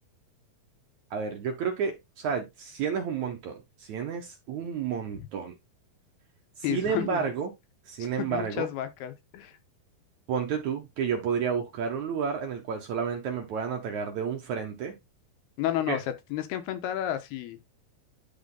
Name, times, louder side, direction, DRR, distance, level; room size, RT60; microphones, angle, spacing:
voice 1, 1.1-5.5 6.7-7.5 7.9-8.7 10.3-15.0 15.9-16.0, right 6 dB, 65° right, 2.0 m, -31 dB
voice 2, 6.6-7.2 8.3-9.5 15.6-16.0 16.3-17.6, left 12 dB, 90° left, 3.1 m, -31 dB
10.5 x 3.8 x 3.8 m
omnidirectional pair, 4.5 m